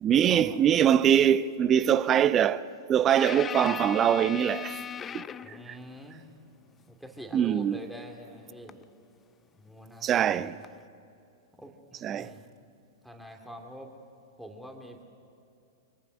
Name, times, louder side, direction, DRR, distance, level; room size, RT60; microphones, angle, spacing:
voice 1, 0.0-4.8 5.1-5.2 5.7-5.8 7.3-7.8 10.0-10.5 12.0-12.3, right 9 dB, 30° right, 0.7 m, -23 dB
sound 1, 3.2-5.7 8.7-8.8 10.6-10.8, left 7 dB, 20° left, 0.5 m, -37 dB
voice 2, 5.4-6.2 6.9-8.8 9.5-10.5 11.6-12.4 13.0-13.9 14.4-15.0, equal, ahead, 2.5 m, -45 dB
26.0 x 22.5 x 6.3 m
figure-of-eight pair, 100°, 0 cm